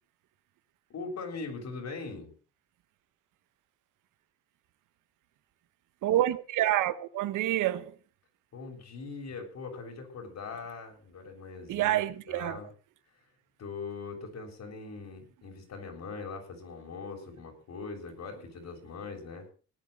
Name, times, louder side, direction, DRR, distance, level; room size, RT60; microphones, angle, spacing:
voice 1, 0.9-2.3 8.5-12.7 13.6-19.5, left 4 dB, 60° left, 7.0 m, -41 dB
voice 2, 6.0-7.9 11.7-12.6, right 13 dB, 85° right, 1.2 m, -27 dB
18.0 x 9.6 x 6.5 m
cardioid pair, 90°, 30 cm